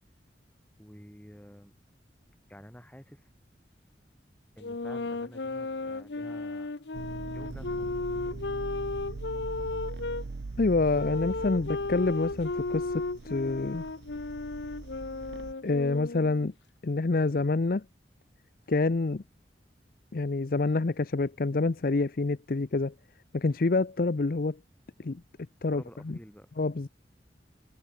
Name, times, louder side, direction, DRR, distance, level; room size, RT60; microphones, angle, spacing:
voice 1, 0.8-1.7 2.5-3.3 4.6-6.9 7.3-8.5 25.7-26.8, equal, 10° left, 4.9 m, -50 dB
sound 1, 4.6-10.2 10.9-16.5, left 3 dB, 85° left, 1.0 m, -34 dB
sound 2, 6.9-15.5, right 3 dB, 90° right, 0.6 m, -41 dB
voice 2, 10.6-13.8 15.6-16.5 16.8-17.8 18.7-19.2 20.1-22.9 23.3-24.6 25.0-25.2 25.6-26.2 26.6-26.9, left 3 dB, 55° left, 0.6 m, -27 dB
head